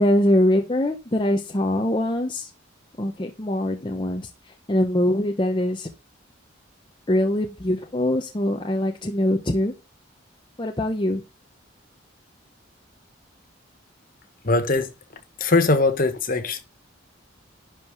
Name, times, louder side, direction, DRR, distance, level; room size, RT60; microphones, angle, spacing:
voice 1, 0.0-2.5 3.0-4.3 4.7-5.9 7.1-9.7 10.6-11.2, left 1 dB, 25° left, 0.9 m, -23 dB
voice 2, 14.4-14.9 15.4-16.6, left 3 dB, 45° left, 1.4 m, -21 dB
11.0 x 4.9 x 5.3 m
head